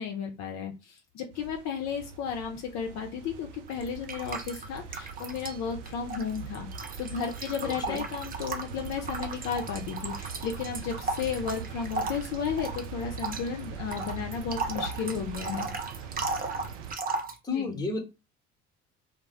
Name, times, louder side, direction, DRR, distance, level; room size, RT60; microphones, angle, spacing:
voice 1, 0.0-15.7 17.5-17.8, left 7 dB, 50° left, 3 dB, 0.6 m, -34 dB
sound 1, 1.3-17.0, right 5 dB, 80° right, 0.5 m, -42 dB
sound 2, 3.7-5.6 5.9-17.4, right 3 dB, 25° right, 0.6 m, -36 dB
voice 2, 7.6-8.0 17.4-18.0, left 3 dB, 10° left, 2 dB, 0.9 m, -32 dB
2.1 x 2.1 x 3.3 m, 0.27 s
figure-of-eight pair, 60°, 36 cm